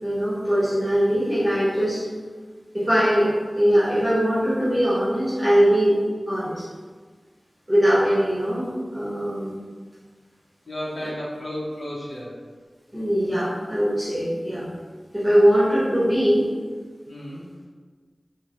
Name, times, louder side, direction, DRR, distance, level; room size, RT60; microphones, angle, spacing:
voice 1, 0.0-2.0 2.7-6.0 6.3-6.6 7.7-9.6 12.9-14.6 15.1-16.5, equal, 10° right, -10 dB, 1.1 m, -21 dB
voice 2, 10.7-12.3 17.1-17.5, equal, 70° left, -6 dB, 0.7 m, -33 dB
4.7 x 2.1 x 3.0 m, 1.5 s
wide cardioid pair, 75°, 0 cm